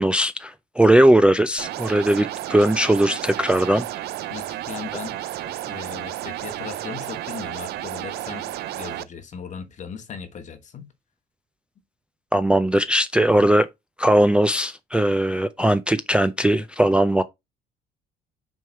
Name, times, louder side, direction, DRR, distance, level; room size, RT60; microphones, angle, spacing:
voice 1, 0.0-3.9 12.3-13.7 14.0-17.2, right 1 dB, 5° right, 0.4 m, -19 dB
sound 1, 1.6-9.0, right 13 dB, 70° right, 0.5 m, -32 dB
voice 2, 4.3-10.9 13.1-13.3, left 7 dB, 45° left, 1.3 m, -38 dB
6.2 x 3.5 x 4.4 m
cardioid pair, 110°, 17 cm